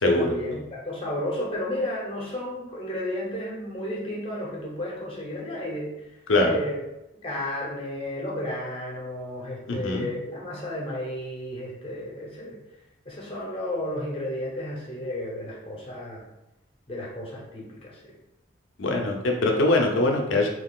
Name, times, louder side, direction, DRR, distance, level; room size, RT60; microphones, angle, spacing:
voice 1, 0.0-5.9 6.4-6.8 7.2-12.6 13.0-16.2 16.9-18.0, left 1 dB, 30° left, -3 dB, 0.8 m, -32 dB
voice 2, 9.7-10.1 18.8-20.5, left 2 dB, 75° left, 2 dB, 0.6 m, -22 dB
3.6 x 2.9 x 2.3 m, 0.91 s
head